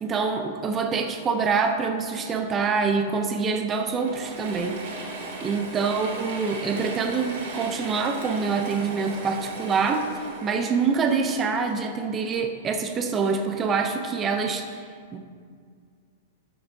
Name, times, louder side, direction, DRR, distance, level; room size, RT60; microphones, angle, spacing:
voice 1, 0.0-4.8 5.4-10.1 10.4-14.8 15.1-15.2, right 5 dB, 15° right, 5 dB, 0.6 m, -25 dB
Mechanisms / Drill, 3.7-12.3, right 2 dB, 50° right, 2.3 m, -37 dB
13.0 x 7.8 x 2.7 m, 2.1 s
supercardioid pair, 170°, 0 cm